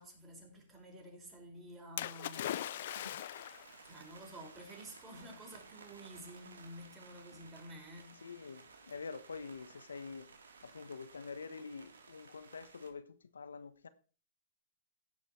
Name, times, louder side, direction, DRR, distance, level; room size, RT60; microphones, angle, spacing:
voice 1, 0.0-2.5 3.8-8.3, right 1 dB, 15° right, 5.0 m, -51 dB
Splash splatter, 2.0-3.8 4.7-4.8, left 12 dB, 60° left, 0.5 m, -40 dB
sound 1, 2.2-12.9, right 4 dB, 80° right, 2.3 m, -57 dB
voice 2, 2.9-3.2 8.2-10.3 10.6-13.9, left 5 dB, 85° left, 1.2 m, -46 dB
16.0 x 5.6 x 4.5 m
hypercardioid pair, 125°, 0 cm